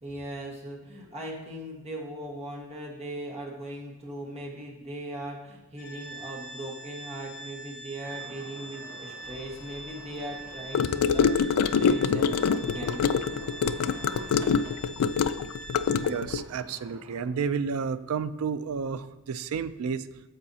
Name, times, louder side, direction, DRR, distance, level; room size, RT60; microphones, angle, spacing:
voice 1, 0.0-13.0, right 1 dB, 30° right, -2 dB, 1.4 m, -39 dB
Organ, 5.8-16.4, right 2 dB, 30° left, 2.5 m, -43 dB
sound 1, 8.0-14.8 15.7-17.3, right 1 dB, 85° right, 1.4 m, -48 dB
Gurgling / Car passing by / Sink (filling or washing), 10.7-16.4, left 6 dB, 70° left, 0.3 m, -25 dB
voice 2, 16.0-20.1, right 6 dB, 65° right, 13 dB, 0.4 m, -31 dB
14.5 x 4.8 x 2.8 m, 0.99 s
head